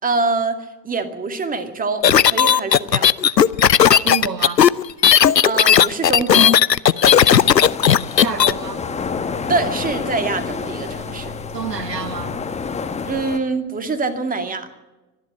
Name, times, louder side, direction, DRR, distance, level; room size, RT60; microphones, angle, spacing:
voice 1, 0.0-3.1 5.4-6.6 9.5-11.3 13.1-14.7, right 3 dB, 15° right, 2.3 m, -24 dB
sound 1, 2.0-8.5, left 9 dB, 90° left, 0.6 m, -13 dB
voice 2, 4.0-4.6 8.2-8.9 11.5-12.4, right 6 dB, 85° right, 1.5 m, -28 dB
sound 2, 7.1-13.4, left 5 dB, 15° left, 1.5 m, -28 dB
25.0 x 11.0 x 9.9 m
figure-of-eight pair, 85°, 48 cm